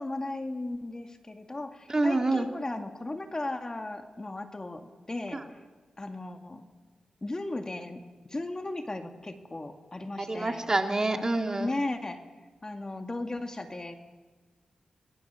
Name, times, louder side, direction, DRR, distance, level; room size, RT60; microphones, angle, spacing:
voice 1, 0.0-5.4 6.0-6.6 7.2-8.0 8.3-10.7 11.1-11.2 11.6-12.2 12.6-14.0, left 2 dB, 30° left, 6 dB, 2.1 m, -36 dB
voice 2, 1.9-2.5 10.3-11.7, right 2 dB, 30° right, 4 dB, 2.5 m, -27 dB
26.5 x 21.0 x 6.9 m, 1.4 s
cardioid pair, 55°, 2 cm